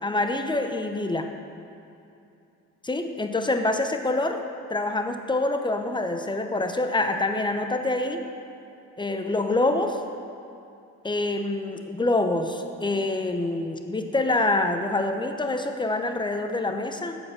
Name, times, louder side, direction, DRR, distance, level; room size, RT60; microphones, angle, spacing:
voice 1, 0.0-1.3 2.8-4.4 4.7-8.2 9.0-10.0 11.0-17.2, left 2 dB, 15° left, 6 dB, 0.8 m, -26 dB
8.7 x 7.0 x 6.9 m, 2.6 s
cardioid pair, 90°, 30 cm